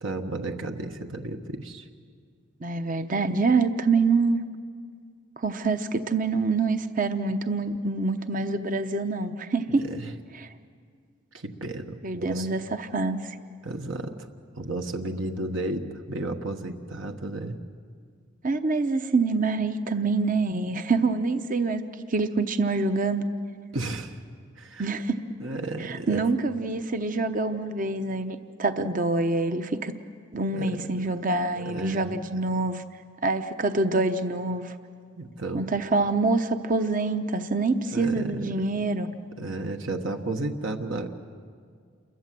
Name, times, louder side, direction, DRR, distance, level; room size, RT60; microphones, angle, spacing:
voice 1, 0.0-1.9 9.7-10.1 11.3-12.5 13.6-14.3 14.5-17.6 23.7-24.2 24.6-24.9 25.4-26.3 27.1-27.2 30.5-31.1 31.5-32.2 35.2-35.7 37.9-38.9 39.4-41.1, right 2 dB, 70° right, 4 dB, 1.3 m, -33 dB
voice 2, 2.6-4.4 5.4-9.8 10.3-10.5 12.0-13.4 18.4-21.8 22.1-23.3 24.8-25.2 25.8-29.9 30.3-32.8 33.2-34.7 35.5-39.1, right 3 dB, 40° right, 8 dB, 0.9 m, -26 dB
28.5 x 22.5 x 7.6 m, 2.1 s
head